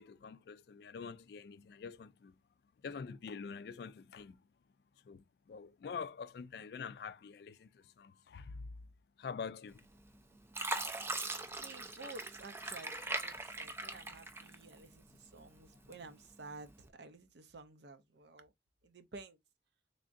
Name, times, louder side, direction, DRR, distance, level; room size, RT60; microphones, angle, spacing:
voice 1, 0.0-2.3 2.8-4.4 5.1-8.6 9.2-9.9, left 5 dB, 60° left, 0.3 m, -46 dB
Fill (with liquid), 9.8-10.2 10.5-14.9 15.4-16.2 16.7-16.9, right 2 dB, 15° right, 0.4 m, -40 dB
voice 2, 11.6-18.5 18.8-19.4, right 3 dB, 70° right, 0.6 m, -52 dB
3.6 x 3.3 x 2.5 m
head